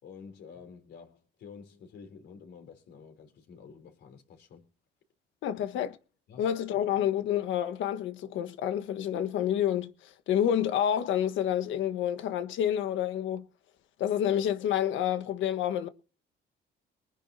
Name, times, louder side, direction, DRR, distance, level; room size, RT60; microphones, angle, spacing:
voice 1, 0.0-4.7 5.5-5.7 6.3-6.5, left 6 dB, 60° left, 3.6 m, -50 dB
voice 2, 5.4-5.9 6.4-13.4 14.0-15.9, left 10 dB, 85° left, 1.4 m, -28 dB
23.0 x 10.0 x 2.8 m
cardioid pair, 160°, 19 cm